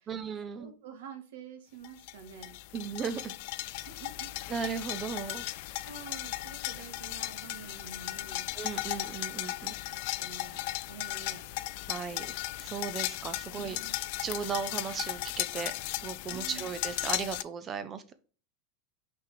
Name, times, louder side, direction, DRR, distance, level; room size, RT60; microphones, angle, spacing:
voice 1, 0.1-0.7 2.7-3.4 4.5-5.4 8.5-9.7 11.9-13.8 14.2-15.7 16.0-18.1, right 6 dB, 20° right, 11 dB, 0.5 m, -36 dB
voice 2, 0.6-2.6 3.8-4.3 5.8-8.5 9.6-11.5 13.5-14.0 16.3-16.7, right 7 dB, 85° right, 5 dB, 1.8 m, -48 dB
sound 1, 1.8-17.4, left 18 dB, 55° left, 0.3 m, -36 dB
5.9 x 3.7 x 4.8 m, 0.38 s
supercardioid pair, 165°, 0 cm